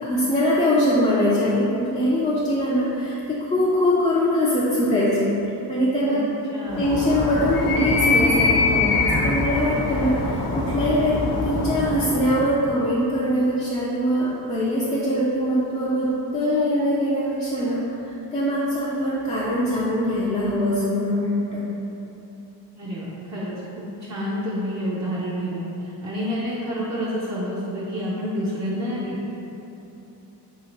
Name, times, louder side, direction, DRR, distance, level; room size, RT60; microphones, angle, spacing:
voice 1, 0.0-5.3 5.7-6.3 6.8-21.6, equal, 20° left, -8 dB, 0.3 m, -22 dB
voice 2, 6.5-7.1 22.7-29.3, equal, 40° right, -7 dB, 0.5 m, -29 dB
Animal, 6.7-12.5, left 3 dB, 55° left, 0.6 m, -23 dB
2.8 x 2.8 x 2.9 m, 2.9 s
cardioid pair, 85°, 42 cm